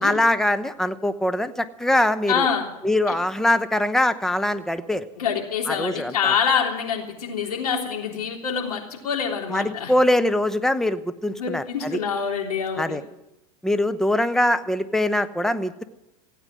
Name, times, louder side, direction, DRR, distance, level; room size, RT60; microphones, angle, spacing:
voice 1, 0.0-2.5 2.8-5.1 5.7-6.3 9.5-12.0 12.8-13.0 13.6-15.8, left 1 dB, ahead, 10 dB, 0.9 m, -22 dB
voice 2, 2.3-2.7 5.2-9.9 11.4-13.0, left 7 dB, 80° left, 1 dB, 3.5 m, -26 dB
16.5 x 9.0 x 9.3 m, 0.89 s
hypercardioid pair, 100°, 19 cm